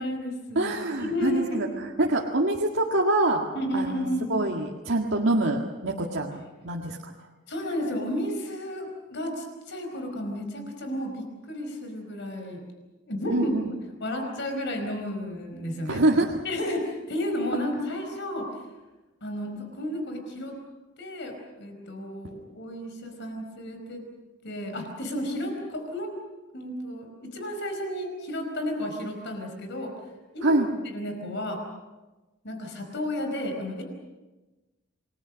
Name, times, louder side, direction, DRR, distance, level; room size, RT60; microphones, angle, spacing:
voice 1, 0.0-0.7 1.1-1.7 3.5-4.3 7.5-12.6 13.1-13.5 14.0-16.0 16.4-18.5 19.2-20.6 21.0-24.0 24.4-26.1 26.5-29.9 30.3-30.5 30.9-31.6 32.4-33.8, left 1 dB, 60° left, 4 dB, 4.9 m, -32 dB
voice 2, 0.6-3.4 3.7-4.0 4.3-7.1 13.3-13.6 15.9-16.3 30.4-30.7, right 2 dB, 70° right, -2 dB, 2.0 m, -25 dB
29.0 x 21.5 x 6.5 m, 1.1 s
head